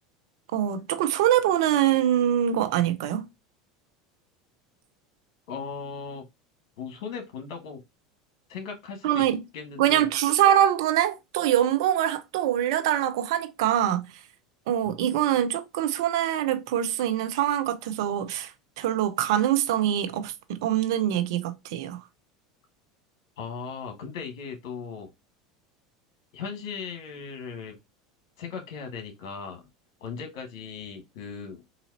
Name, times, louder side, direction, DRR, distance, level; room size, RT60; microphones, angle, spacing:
voice 1, 0.5-3.3 9.0-9.4 9.8-14.1 14.7-22.0, right 11 dB, 70° right, 0.7 m, -24 dB
voice 2, 5.5-6.2 6.8-7.8 8.5-9.3 9.5-10.1 14.8-14.9 23.4-25.1 26.3-27.8 28.4-29.7 30.0-31.6, left 6 dB, 65° left, 1.4 m, -37 dB
4.0 x 2.8 x 2.7 m
hypercardioid pair, 85°, 3 cm